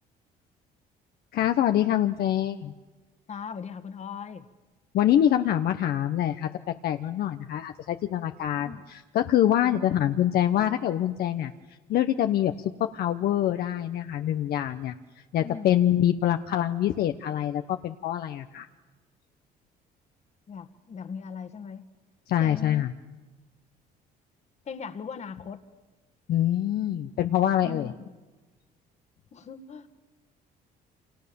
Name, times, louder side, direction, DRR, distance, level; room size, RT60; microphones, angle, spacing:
voice 1, 1.3-2.7 4.9-6.5 6.8-11.5 11.9-12.5 12.8-14.9 15.3-18.7 22.3-22.9 26.3-27.9, left 11 dB, 65° left, 7 dB, 1.0 m, -25 dB
voice 2, 3.3-4.5 8.5-8.8 9.7-9.9 15.4-15.8 20.5-21.8 22.4-22.9 24.7-25.6 27.6-28.0 29.3-29.9, left 6 dB, 40° left, 10 dB, 1.8 m, -39 dB
29.0 x 27.0 x 7.0 m, 1.2 s
cardioid pair, 110°, 17 cm